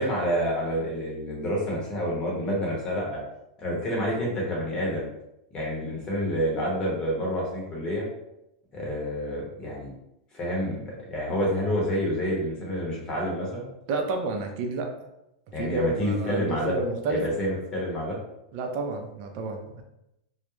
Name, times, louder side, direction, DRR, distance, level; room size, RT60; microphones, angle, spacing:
voice 1, 0.0-3.2 3.6-5.1 5.5-8.1 8.7-9.9 10.3-13.7 15.5-16.7 17.1-18.2, equal, 20° left, -3 dB, 0.8 m, -28 dB
voice 2, 13.9-15.1 15.5-17.2 18.5-19.8, right 3 dB, 40° right, 3 dB, 0.5 m, -30 dB
2.3 x 2.0 x 3.0 m, 0.86 s
supercardioid pair, 155°, 4 cm